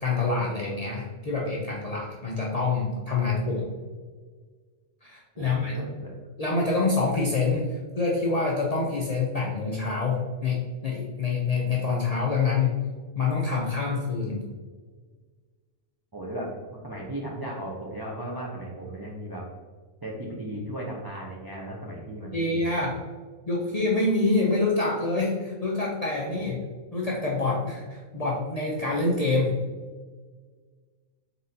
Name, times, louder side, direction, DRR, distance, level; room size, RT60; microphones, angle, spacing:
voice 1, 0.0-3.7 5.0-5.8 6.4-12.8 13.1-14.4 22.3-23.0 23.5-26.6 26.9-29.6, left 3 dB, 50° left, -3 dB, 0.5 m, -26 dB
voice 2, 5.3-6.1 16.1-16.5 16.8-19.5 20.0-22.9 26.4-26.5, right 1 dB, 35° right, -3 dB, 0.3 m, -36 dB
4.1 x 3.7 x 2.7 m, 1.5 s
omnidirectional pair, 1.3 m